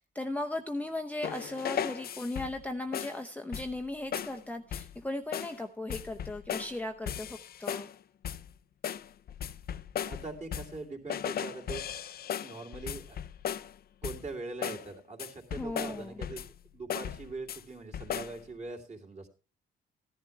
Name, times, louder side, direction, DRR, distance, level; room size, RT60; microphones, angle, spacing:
voice 1, 0.0-7.9 15.6-16.2, left 2 dB, 5° left, 4 dB, 0.8 m, -37 dB
sound 1, 1.2-2.6 2.9-3.2 3.5-3.8 4.1-4.4 4.7-5.0 5.3-5.6 5.9-6.8 7.1-7.9 8.2-8.5 8.8-10.8 11.1-13.7 14.0-14.3 14.6-14.9 15.2-16.6 16.9-17.6 17.9-18.4, left 9 dB, 50° left, 0.5 m, -37 dB
voice 2, 10.0-11.8 12.4-13.2 14.0-16.5 16.7-19.3, right 3 dB, 35° right, 3 dB, 3.0 m, -42 dB
15.5 x 11.0 x 3.3 m, 0.33 s
cardioid pair, 90°, 20 cm